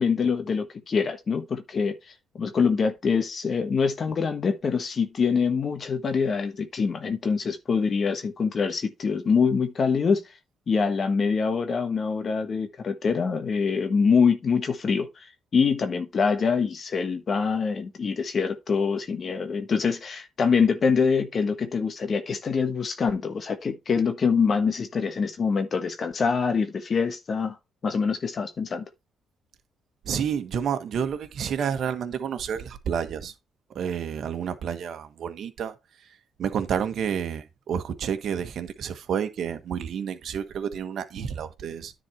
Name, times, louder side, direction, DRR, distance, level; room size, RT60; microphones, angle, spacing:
voice 1, 0.0-10.4 10.7-27.6 27.8-28.8, left 5 dB, 45° left, 1.3 m, -25 dB
voice 2, 30.0-33.3 33.7-41.9, right 8 dB, 65° right, 1.3 m, -30 dB
10.0 x 4.2 x 4.3 m
cardioid pair, 90°, 0 cm